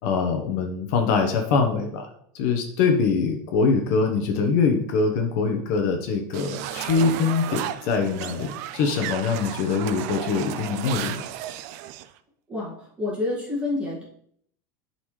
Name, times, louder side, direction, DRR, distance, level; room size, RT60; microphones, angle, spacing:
voice 1, 0.0-11.2, left 5 dB, 55° left, 4 dB, 1.1 m, -23 dB
sound 1, 6.3-12.1, right 12 dB, 55° right, 0.4 m, -34 dB
voice 2, 12.5-14.0, left 2 dB, 10° right, -5 dB, 1.9 m, -28 dB
11.0 x 4.2 x 3.2 m, 0.67 s
supercardioid pair, 165°, 10 cm